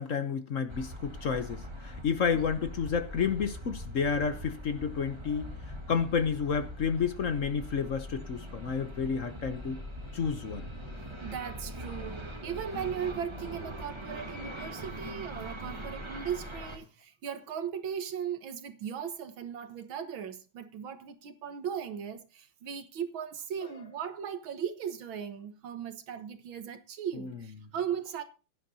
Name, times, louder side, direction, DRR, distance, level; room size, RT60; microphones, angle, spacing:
voice 1, 0.0-5.5 5.9-9.8 10.1-10.6 27.1-27.3, left 6 dB, 50° left, 1.0 m, -30 dB
sound 1, 0.7-16.8, equal, 15° right, 1.5 m, -42 dB
voice 2, 11.2-28.2, right 8 dB, 70° right, 2.0 m, -37 dB
16.5 x 10.5 x 2.8 m
omnidirectional pair, 2.3 m